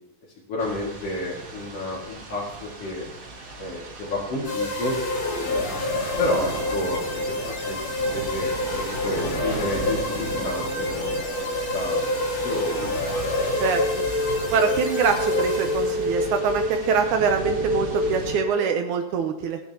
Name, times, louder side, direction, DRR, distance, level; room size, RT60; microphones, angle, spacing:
voice 1, 0.5-3.0 3.6-4.9 5.4-5.9 6.2-7.8 8.1-11.4 11.7-12.1 12.4-12.9, left 2 dB, 50° left, -7 dB, 3.0 m, -30 dB
sound 1, 0.6-18.4, right 3 dB, 55° right, 2.9 m, -36 dB
sound 2, 4.4-16.2, left 2 dB, 80° left, 3.8 m, -28 dB
sound 3, 9.5-18.8, left 1 dB, 20° right, 2.2 m, -29 dB
voice 2, 14.5-19.6, right 6 dB, 80° right, 5 dB, 2.2 m, -24 dB
18.0 x 10.5 x 2.9 m, 0.86 s
omnidirectional pair, 3.6 m